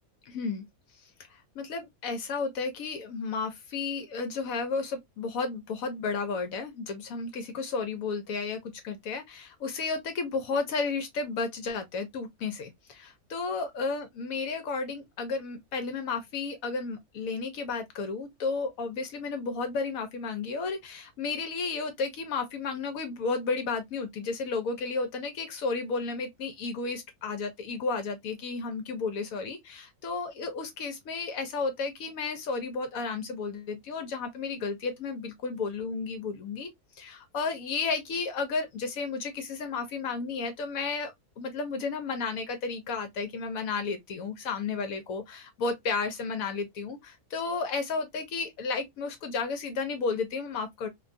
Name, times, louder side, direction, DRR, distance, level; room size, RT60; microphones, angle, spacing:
voice 1, 0.3-0.6 1.3-36.7 37.0-50.9, left 4 dB, 70° left, 1.0 m, -33 dB
2.6 x 2.2 x 2.4 m
omnidirectional pair, 1.6 m